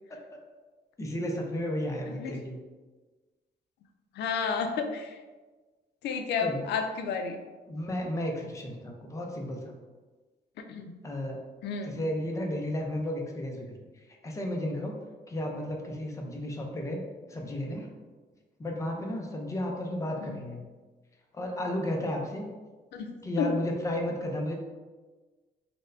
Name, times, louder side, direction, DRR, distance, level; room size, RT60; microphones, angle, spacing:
voice 1, 1.0-2.6 6.4-6.6 7.7-9.8 11.0-11.4 11.8-13.7 14.2-15.0 15.3-17.0 17.3-17.9 18.6-20.6 21.3-22.5 23.2-24.5, left 1 dB, 20° left, 1 dB, 0.4 m, -33 dB
voice 2, 4.2-5.1 6.0-7.4 10.6-10.9 11.6-12.0 20.2-20.4 22.9-23.5, left 5 dB, 75° left, 5 dB, 0.4 m, -31 dB
4.2 x 2.1 x 2.5 m, 1.3 s
wide cardioid pair, 165°, 17 cm